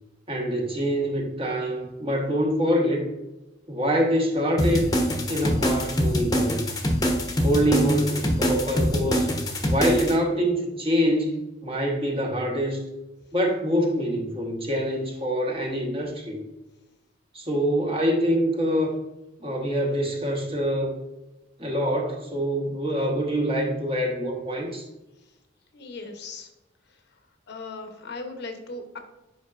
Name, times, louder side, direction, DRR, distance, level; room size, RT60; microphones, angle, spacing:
voice 1, 0.3-3.1 3.7-4.9 5.3-6.7 7.4-9.3 9.7-12.9 13.3-16.4 17.3-19.0 19.4-20.9 21.6-24.9, equal, 30° right, 0 dB, 1.2 m, -25 dB
sound 1, 4.6-10.1, equal, 20° left, 0.9 m, -24 dB
voice 2, 25.7-26.5 26.9-27.0 27.5-29.0, left 3 dB, 60° left, 5 dB, 0.9 m, -38 dB
7.9 x 5.2 x 2.4 m, 1.0 s
head